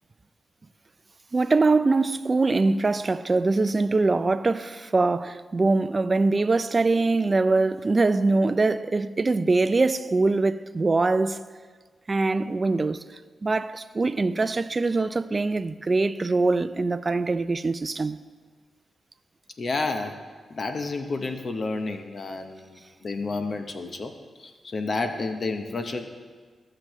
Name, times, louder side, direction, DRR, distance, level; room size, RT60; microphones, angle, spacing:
voice 1, 1.3-11.4 12.1-13.0 13.4-18.2, right 3 dB, 35° right, 0.4 m, -23 dB
voice 2, 19.6-20.2 20.5-24.1 24.4-26.1, left 3 dB, 50° left, 0.7 m, -30 dB
15.0 x 6.7 x 3.1 m
cardioid pair, 65°, 0 cm